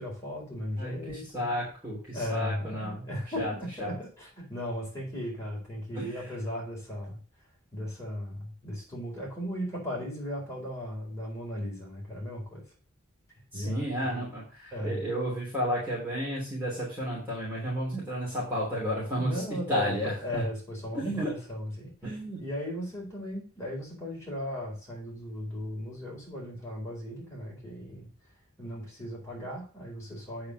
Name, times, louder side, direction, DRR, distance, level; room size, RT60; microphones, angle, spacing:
voice 1, 0.0-1.5 2.1-7.2 7.7-12.6 13.5-14.3 14.7-15.0 19.2-21.9 22.4-28.1 28.6-30.5, equal, 15° left, -4 dB, 4.4 m, -36 dB
voice 2, 0.8-3.0 3.3-3.5 3.8-3.9 5.9-6.3 13.5-20.5 20.9-21.3 22.0-22.5, equal, 10° right, -7 dB, 3.2 m, -32 dB
8.7 x 4.6 x 6.5 m, 0.39 s
head